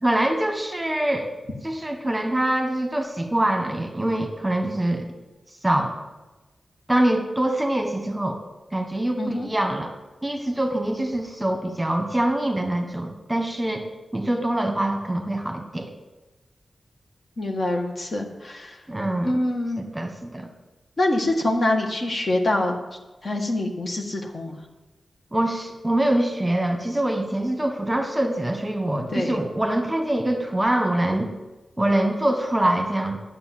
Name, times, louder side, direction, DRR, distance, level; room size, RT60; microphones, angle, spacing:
voice 1, 0.0-1.3 1.6-5.1 5.6-5.9 6.9-8.4 8.7-9.9 10.2-15.9 18.9-19.4 19.9-20.5 25.3-31.3 31.8-33.2, right 1 dB, 10° right, 4 dB, 1.5 m, -24 dB
voice 2, 9.2-9.5 17.4-18.8 19.2-19.8 21.0-22.8 23.2-24.7 29.1-29.4, left 1 dB, 50° left, 2 dB, 1.7 m, -25 dB
9.8 x 6.8 x 7.7 m, 1.1 s
wide cardioid pair, 85°, 0 cm